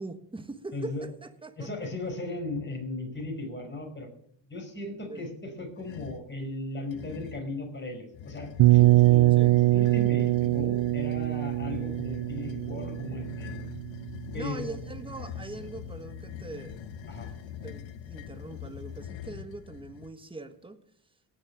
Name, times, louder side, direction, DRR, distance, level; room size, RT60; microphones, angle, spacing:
voice 1, 0.0-1.7 5.1-5.3 9.4-9.5 14.3-16.8 17.5-20.8, right 2 dB, 10° right, 9 dB, 1.4 m, -42 dB
voice 2, 0.7-1.1 1.6-4.1 4.5-13.6 14.3-14.8 17.1-17.3, left 2 dB, 25° left, 2 dB, 5.3 m, -37 dB
sound 1, 5.8-6.3 6.9-7.5 8.1-20.1, left 10 dB, 75° left, 1.1 m, -43 dB
sound 2, 8.6-14.4, right 17 dB, 60° right, 0.5 m, -23 dB
17.5 x 6.6 x 7.7 m, 0.68 s
cardioid pair, 85°, 46 cm